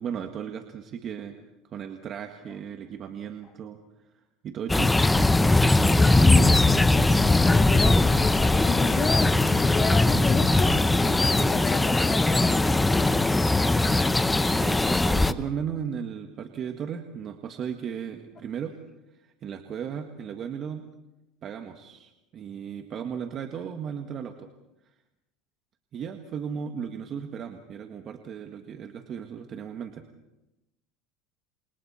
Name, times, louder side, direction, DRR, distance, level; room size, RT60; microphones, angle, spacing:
voice 1, 0.0-1.4 1.7-3.8 4.4-4.9 14.5-18.7 19.1-20.8 21.4-24.5 25.9-30.0, right 7 dB, 40° right, 5 dB, 1.7 m, -36 dB
sound 1, 4.7-15.3, left 2 dB, 10° left, 0.8 m, -20 dB
voice 2, 5.9-13.3, left 6 dB, 30° left, 5 dB, 2.4 m, -33 dB
29.5 x 27.0 x 4.3 m, 0.95 s
supercardioid pair, 120°, 0 cm